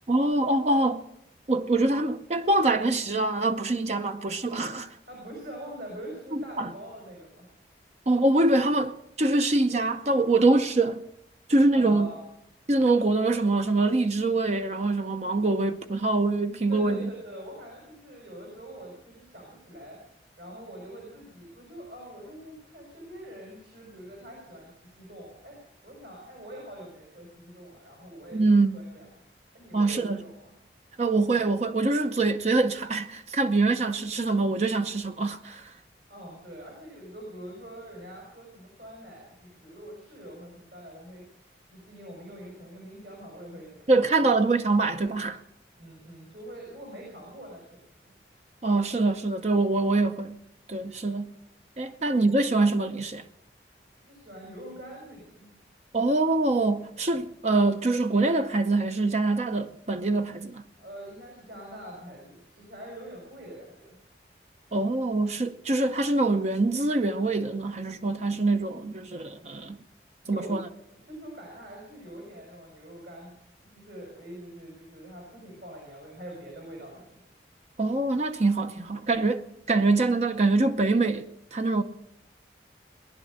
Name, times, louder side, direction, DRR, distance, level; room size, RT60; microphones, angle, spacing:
voice 1, 0.1-1.0 1.5-5.0 6.3-6.7 8.1-11.0 11.5-12.1 12.7-17.1 28.3-28.8 29.7-30.2 31.0-35.7 43.9-45.4 48.6-50.4 50.7-51.3 51.8-53.2 55.9-60.6 64.7-69.8 70.3-70.6 77.8-81.8, right 2 dB, 40° right, 0.6 m, -24 dB
voice 2, 5.1-7.5 11.7-12.2 16.7-20.0 20.4-25.6 25.8-29.1 29.5-30.5 36.1-41.2 41.6-44.1 45.8-48.1 54.0-55.5 60.8-64.0 70.2-70.6 71.0-73.3 73.7-77.2, right 1 dB, 65° right, 5.8 m, -44 dB
20.0 x 11.0 x 6.5 m
head